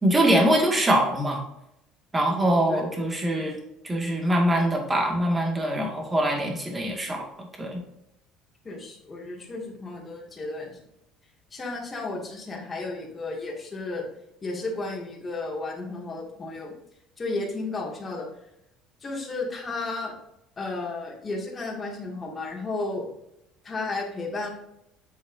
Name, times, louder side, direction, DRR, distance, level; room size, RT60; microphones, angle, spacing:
voice 1, 0.0-1.4 2.1-3.6 3.8-7.8, right 1 dB, 15° right, 0 dB, 2.1 m, -23 dB
voice 2, 2.3-3.0 3.4-3.5 8.6-10.8 11.5-14.0 14.4-16.7 17.2-18.3 19.0-20.1 20.6-23.0 23.6-24.5, left 3 dB, 25° left, -2 dB, 2.3 m, -33 dB
8.3 x 6.6 x 2.7 m, 0.82 s
cardioid pair, 130°, 0 cm